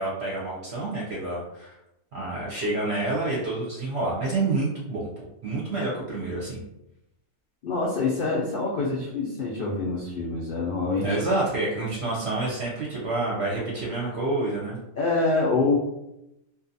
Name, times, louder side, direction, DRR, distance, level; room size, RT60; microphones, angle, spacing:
voice 1, 0.0-1.8 2.1-5.1 5.4-6.6 11.0-14.8, right 2 dB, 60° right, -6 dB, 0.8 m, -28 dB
voice 2, 7.6-11.2 15.0-15.8, left 3 dB, 80° left, -4 dB, 0.5 m, -25 dB
2.7 x 2.3 x 2.6 m, 0.87 s
omnidirectional pair, 1.5 m